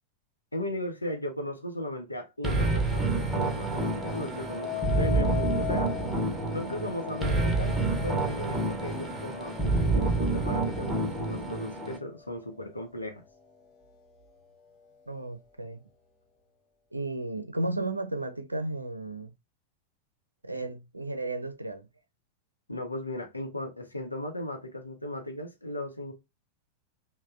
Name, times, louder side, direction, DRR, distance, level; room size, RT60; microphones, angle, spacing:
voice 1, 0.5-5.9 6.5-13.2 22.7-26.1, left 1 dB, 85° left, 0.7 m, -36 dB
sound 1, 2.4-12.0, right 2 dB, 10° right, 0.8 m, -28 dB
sound 2, 3.7-12.8 13.4-13.8, left 13 dB, 35° left, 0.8 m, -40 dB
voice 2, 15.1-15.8 16.9-19.3 20.4-21.9, right 2 dB, 85° right, 0.4 m, -34 dB
3.2 x 2.1 x 2.4 m
figure-of-eight pair, 90°, 0 cm